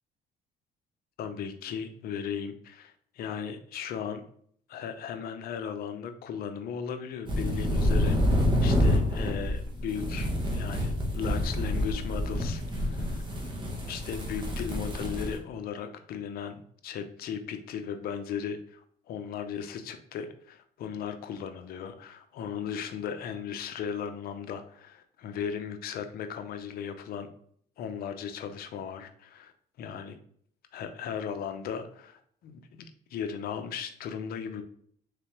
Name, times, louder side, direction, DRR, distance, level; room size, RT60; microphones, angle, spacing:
voice 1, 1.2-4.2 4.7-13.2 13.9-18.8 19.1-27.3 27.8-29.5 29.8-30.2 30.7-32.8 33.1-34.6, left 7 dB, 65° left, 8 dB, 0.6 m, -37 dB
sound 1, 7.3-15.4, left 1 dB, 30° right, 1.0 m, -28 dB
3.6 x 3.3 x 2.9 m, 0.62 s
cardioid pair, 110°, 17 cm